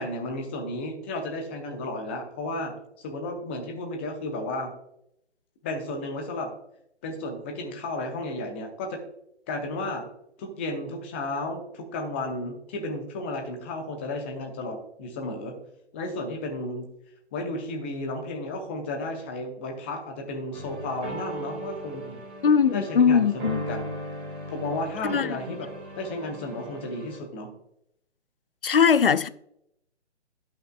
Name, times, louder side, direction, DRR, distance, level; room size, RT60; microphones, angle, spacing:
voice 1, 0.0-4.7 5.6-6.5 7.0-9.0 9.5-10.1 10.4-15.6 15.9-16.9 17.3-22.2 22.7-24.0 24.5-25.7 26.0-27.5, left 2 dB, 10° left, 0.7 m, -33 dB
sound 1, 20.5-27.2, right 1 dB, 25° right, 2.1 m, -38 dB
voice 2, 22.4-23.6 25.0-25.6 28.6-29.3, left 6 dB, 50° left, 0.5 m, -21 dB
17.0 x 5.8 x 2.3 m
figure-of-eight pair, 145°, 35 cm